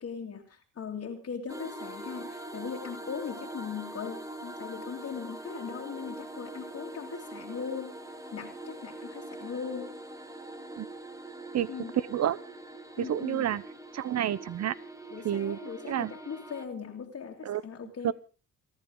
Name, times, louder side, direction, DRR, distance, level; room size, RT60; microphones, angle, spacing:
voice 1, 0.0-8.0 8.3-9.9 11.7-11.9 13.0-13.5 15.1-18.1, left 6 dB, 50° left, 0 dB, 2.5 m, -39 dB
sound 1, 1.5-16.6, right 1 dB, 10° right, 1.8 m, -43 dB
voice 2, 13.0-13.6 13.9-14.8 15.2-15.6 15.9-16.1 17.4-17.6 18.0-18.1, right 10 dB, 60° right, 19 dB, 0.9 m, -29 dB
29.0 x 10.5 x 3.9 m, 0.34 s
cardioid pair, 90°, 30 cm